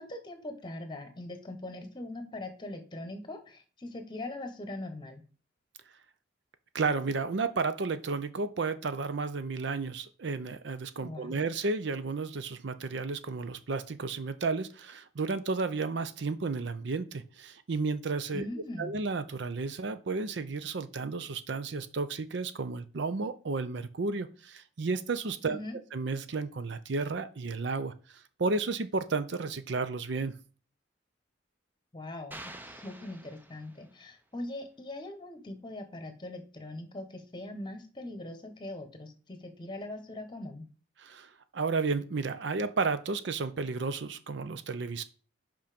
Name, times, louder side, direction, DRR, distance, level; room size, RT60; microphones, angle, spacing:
voice 1, 0.0-5.2 11.0-11.4 18.3-18.9 25.4-25.8 31.9-40.6, left 1 dB, 25° left, 6 dB, 1.2 m, -41 dB
voice 2, 6.7-18.5 18.8-25.6 25.9-30.4 41.0-45.0, right 4 dB, 60° right, 12 dB, 0.5 m, -32 dB
sound 1, 32.3-34.0, right 1 dB, 10° right, 0.5 m, -47 dB
5.5 x 5.2 x 5.1 m, 0.38 s
head